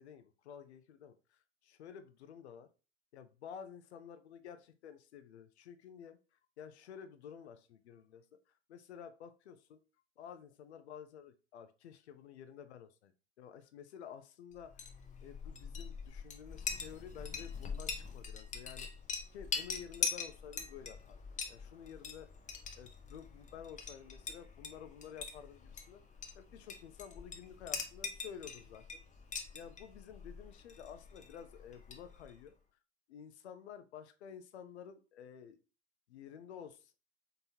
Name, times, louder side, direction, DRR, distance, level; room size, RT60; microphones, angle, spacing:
voice 1, 0.0-2.7 3.1-6.2 6.6-8.2 8.7-9.8 10.2-14.9 15.2-18.9 19.3-21.2 21.5-22.3 22.8-26.0 26.4-28.8 29.5-32.5 33.1-35.6 36.1-36.9, left 8 dB, 75° left, 10 dB, 0.7 m, -51 dB
Chink clink, 14.6-32.4, left 5 dB, 20° left, 0.8 m, -43 dB
3.9 x 3.8 x 2.8 m, 0.33 s
figure-of-eight pair, 80°, 34 cm